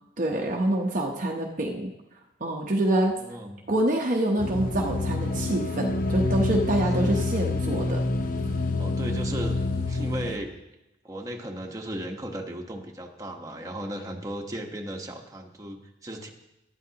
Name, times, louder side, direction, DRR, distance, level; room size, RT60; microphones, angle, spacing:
voice 1, 0.2-1.9 2.4-3.2 3.7-8.0, right 1 dB, 40° right, 0 dB, 0.9 m, -26 dB
voice 2, 3.2-3.6 6.9-7.2 8.8-10.5 11.0-16.3, right 1 dB, 20° right, 0 dB, 1.2 m, -36 dB
sound 1, 4.4-10.4, left 2 dB, 45° left, 0.9 m, -27 dB
17.5 x 11.5 x 2.9 m, 0.93 s
head